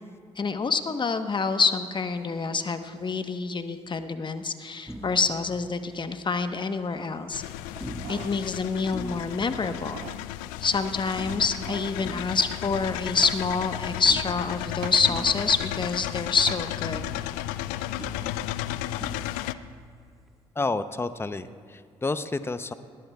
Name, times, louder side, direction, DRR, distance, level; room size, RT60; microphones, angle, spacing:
voice 1, 0.4-7.4 8.1-10.1 10.6-17.0, left 4 dB, 35° left, 8 dB, 1.1 m, -27 dB
sound 1, 4.9-6.4 7.8-10.4 11.2-13.7 14.1-16.7 16.9-20.4, equal, ahead, 1.8 m, -44 dB
sound 2, 7.3-19.5, left 14 dB, 75° left, 0.4 m, -34 dB
sound 3, 7.8-8.4 8.9-9.0 9.7-10.3 11.3-12.0 13.2-13.5 14.8-15.0 16.5-16.7 17.3-17.4, right 16 dB, 65° right, 0.4 m, -42 dB
voice 2, 20.6-22.7, left 3 dB, 15° left, 12 dB, 0.7 m, -30 dB
20.5 x 19.0 x 2.4 m, 2.1 s
hypercardioid pair, 45°, 14 cm